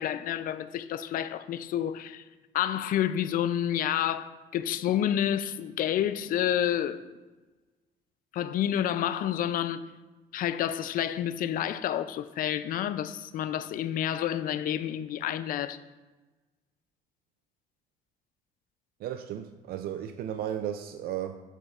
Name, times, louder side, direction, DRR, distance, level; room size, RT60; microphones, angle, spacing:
voice 1, 0.0-2.2 2.5-7.1 8.3-9.8 10.3-15.8, left 11 dB, 55° left, 0.4 m, -29 dB
voice 2, 19.0-21.4, right 10 dB, 65° right, 0.4 m, -34 dB
8.1 x 7.0 x 2.4 m
cardioid pair, 110°, 17 cm